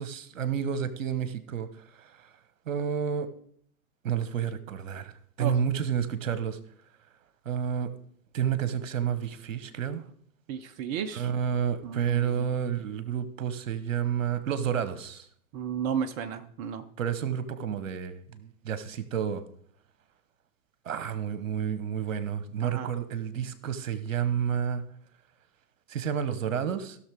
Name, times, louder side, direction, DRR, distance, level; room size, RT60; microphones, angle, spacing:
voice 1, 0.0-2.3 2.7-3.3 4.0-6.6 7.4-7.9 8.3-10.0 11.1-15.3 17.0-19.4 20.8-24.8 25.9-27.0, right 8 dB, 60° right, 1.2 m, -30 dB
voice 2, 10.5-11.3 11.8-12.5 15.5-16.9 22.6-22.9, right 8 dB, 25° right, 0.5 m, -33 dB
16.0 x 6.5 x 3.5 m
figure-of-eight pair, 105°, 43 cm